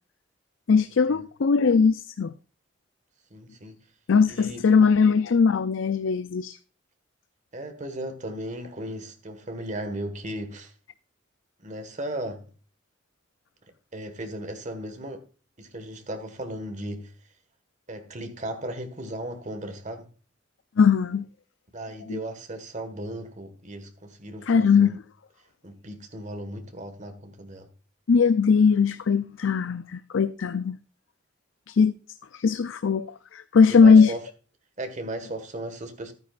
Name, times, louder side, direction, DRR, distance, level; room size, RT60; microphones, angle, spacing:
voice 1, 0.7-2.3 4.1-6.6 20.8-21.3 22.1-22.2 24.5-25.0 28.1-30.8 31.7-31.9 32.3-33.1 33.3-34.1, left 5 dB, 75° left, 0.5 m, -20 dB
voice 2, 3.3-3.8 4.3-4.6 7.5-10.7 11.6-12.5 13.9-15.2 15.6-17.1 17.9-20.1 21.7-25.0 25.6-27.7 33.7-34.2 34.8-36.1, right 1 dB, 40° right, 1.7 m, -36 dB
12.5 x 9.7 x 2.5 m
head